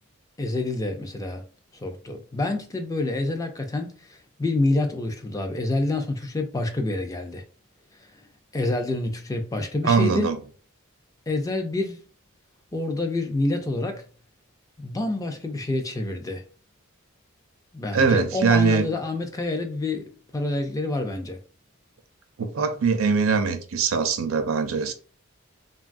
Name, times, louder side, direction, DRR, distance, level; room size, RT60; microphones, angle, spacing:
voice 1, 0.4-1.4 1.7-7.4 8.0-8.1 8.5-10.3 11.3-12.0 12.7-14.0 14.8-16.4 17.7-21.4, left 2 dB, 15° left, 0.3 m, -27 dB
voice 2, 9.8-10.4 17.9-18.9 22.4-24.9, right 5 dB, 65° right, 0.4 m, -22 dB
3.1 x 2.3 x 2.4 m
head